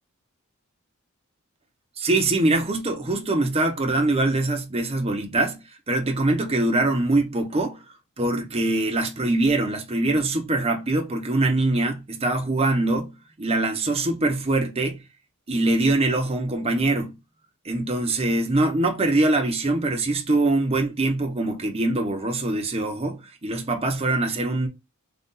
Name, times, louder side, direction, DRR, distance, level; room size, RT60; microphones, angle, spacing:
voice 1, 2.0-5.6 5.9-7.8 8.2-15.0 15.5-17.1 17.6-24.7, right 2 dB, 30° right, 0.8 m, -23 dB
3.9 x 2.5 x 3.8 m
head